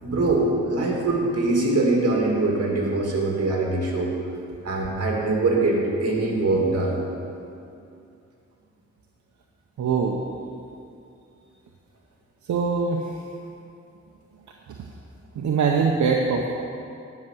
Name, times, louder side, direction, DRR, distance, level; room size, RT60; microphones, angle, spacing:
voice 1, 0.0-4.1 4.6-7.0, right 2 dB, 55° right, -1 dB, 2.6 m, -23 dB
voice 2, 9.8-10.2 12.5-13.0 15.3-16.5, right 5 dB, 85° right, 1 dB, 0.8 m, -22 dB
10.5 x 5.9 x 7.7 m, 2.5 s
cardioid pair, 65°, 29 cm